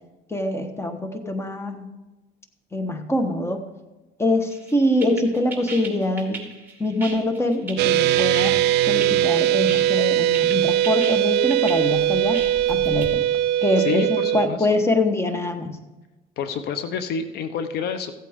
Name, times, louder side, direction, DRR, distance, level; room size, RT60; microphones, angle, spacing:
voice 1, 0.3-1.9 2.7-3.7 4.2-6.5 6.8-13.2 13.6-15.8, left 1 dB, 15° left, 6 dB, 1.3 m, -24 dB
sound 1, 4.5-13.1, right 3 dB, 10° right, 2.6 m, -37 dB
sound 2, 7.8-14.5, right 12 dB, 80° right, 0.4 m, -20 dB
voice 2, 13.8-14.8 16.4-18.1, left 6 dB, 70° left, 10 dB, 0.8 m, -28 dB
15.5 x 8.4 x 3.6 m, 1.1 s
cardioid pair, 110°, 17 cm